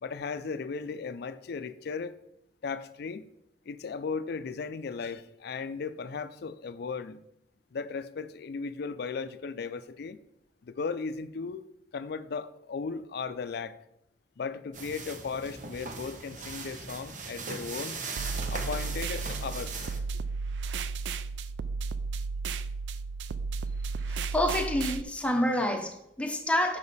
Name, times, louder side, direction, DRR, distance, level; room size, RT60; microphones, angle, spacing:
voice 1, 0.0-2.2 2.6-3.3 3.7-7.2 7.7-10.2 10.6-11.7 11.9-13.8 14.4-18.0 18.5-19.9, left 5 dB, 60° left, 0.4 m, -36 dB
sound 1, 14.7-20.0, right 4 dB, 45° right, 0.8 m, -39 dB
sound 2, 18.2-25.0, right 4 dB, 75° right, 0.3 m, -33 dB
voice 2, 24.3-26.8, left 1 dB, 5° left, 0.7 m, -27 dB
6.8 x 5.3 x 4.1 m
head